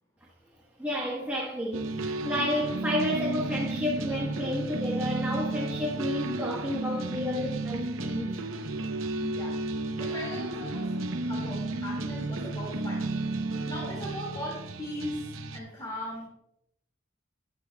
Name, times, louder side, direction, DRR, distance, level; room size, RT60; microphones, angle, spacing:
voice 1, 0.8-8.3 13.5-13.6, left 1 dB, 10° right, 1.2 m, -31 dB
sound 1, 1.7-15.6, right 2 dB, 90° right, 0.8 m, -33 dB
voice 2, 9.2-9.6 10.0-10.9 11.3-13.0 13.6-16.3, equal, 20° left, 2.1 m, -38 dB
12.0 x 11.0 x 2.3 m
head